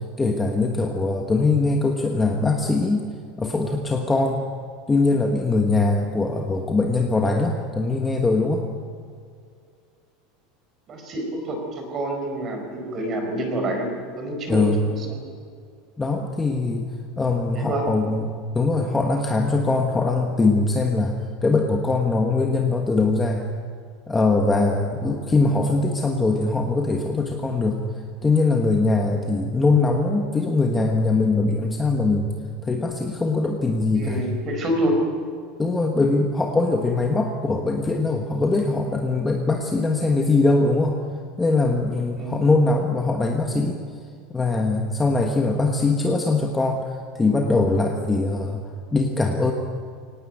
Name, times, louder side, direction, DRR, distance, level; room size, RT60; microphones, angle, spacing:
voice 1, 0.2-3.1 3.4-4.4 4.9-8.6 14.5-14.8 16.0-16.9 17.2-23.5 24.1-27.8 28.2-32.3 32.6-34.2 35.6-40.9 41.4-43.8 44.3-49.5, left 3 dB, 10° left, 2 dB, 1.3 m, -22 dB
voice 2, 10.9-15.2 17.5-17.9 33.9-35.0 35.8-35.9 42.2-42.5, right 1 dB, 25° right, 4 dB, 4.7 m, -27 dB
23.5 x 18.5 x 9.2 m, 2.2 s
supercardioid pair, 180°, 0 cm